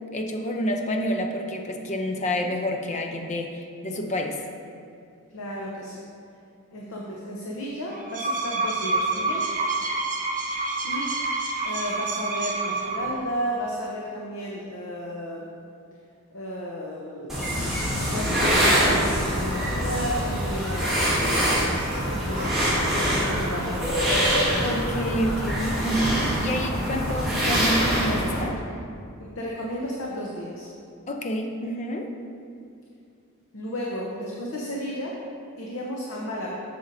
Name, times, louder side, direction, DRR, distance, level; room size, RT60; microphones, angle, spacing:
voice 1, 0.1-4.4 24.6-28.6 31.1-32.1, equal, 35° left, 3 dB, 0.5 m, -28 dB
voice 2, 5.3-6.0 6.7-9.5 10.8-11.1 11.6-15.5 16.3-17.7 18.1-24.1 29.2-30.7 33.5-35.2 35.6-36.6, equal, 70° left, -3 dB, 0.8 m, -33 dB
sound 1, 7.9-13.3, right 3 dB, 40° right, 0.8 m, -28 dB
sound 2, 17.3-28.4, equal, ahead, 1.7 m, -24 dB
8.2 x 6.7 x 2.6 m, 2.4 s
head